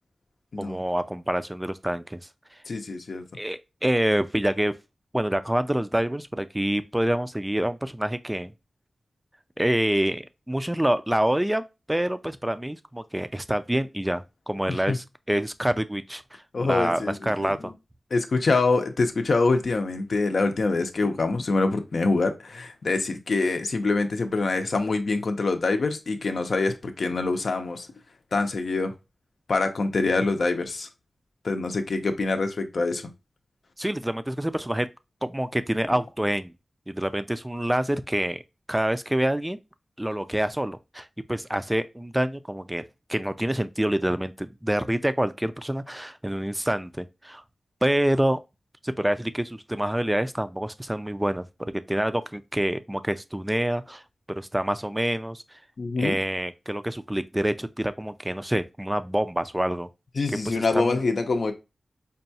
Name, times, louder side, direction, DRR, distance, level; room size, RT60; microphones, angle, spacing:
voice 1, 0.6-2.2 3.4-4.7 5.1-8.5 9.6-16.2 16.6-17.7 33.8-34.9 35.2-36.5 36.9-38.4 38.7-39.6 40.0-42.8 43.1-47.4 47.8-48.4 48.8-54.0 54.4-55.4 56.0-59.9 60.5-61.0, right 1 dB, 10° right, 0.3 m, -27 dB
voice 2, 2.7-3.2 14.7-15.0 16.5-17.7 18.1-27.9 28.3-28.9 29.5-30.9 31.4-33.1 55.8-56.2 60.2-61.5, left 3 dB, 70° left, 0.6 m, -25 dB
5.2 x 2.3 x 2.7 m
wide cardioid pair, 80°, 0 cm